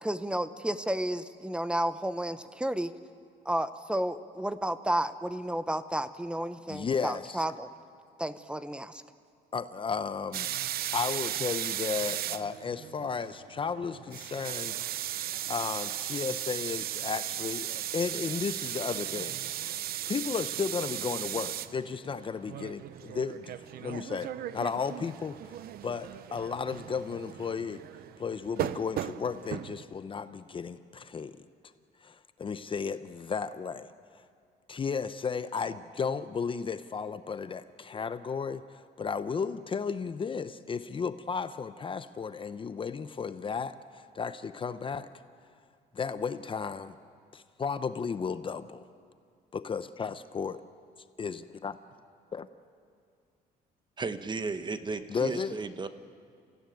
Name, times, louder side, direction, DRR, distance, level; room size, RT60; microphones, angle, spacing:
voice 1, 0.0-2.9 3.5-7.7 8.2-9.0, right 1 dB, 5° right, 12 dB, 0.9 m, -32 dB
voice 2, 6.7-7.4 9.5-10.5 10.9-14.8 15.5-19.6 20.1-25.4 25.8-27.8 28.2-31.4 32.0-33.9 34.7-45.1 45.9-46.9 47.3-48.9 49.5-50.6 51.2-51.8 52.3-52.5 55.1-55.5, left 5 dB, 30° left, 12 dB, 0.8 m, -34 dB
sound 1, 10.3-29.8, right 12 dB, 65° right, 0.8 m, -36 dB
voice 3, 54.0-55.9, right 4 dB, 25° right, 10 dB, 1.2 m, -34 dB
28.0 x 16.5 x 9.2 m, 2.2 s
cardioid pair, 110°, 17 cm